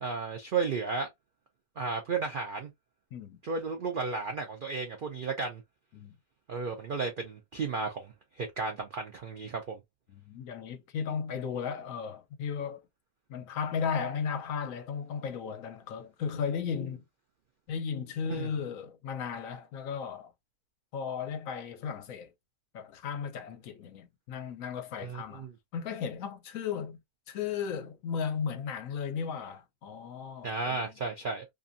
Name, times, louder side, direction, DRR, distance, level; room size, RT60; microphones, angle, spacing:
voice 1, 0.0-1.1 1.8-2.7 3.4-5.6 6.5-9.8 18.3-18.5 25.0-25.5 30.4-31.4, right 4 dB, 75° right, 0.4 m, -33 dB
voice 2, 10.1-12.8 13.3-17.0 17.7-20.3 20.9-22.3 22.7-25.5 25.7-27.0 27.3-30.9, left 6 dB, 70° left, 1.0 m, -35 dB
2.6 x 2.4 x 2.5 m
omnidirectional pair, 1.6 m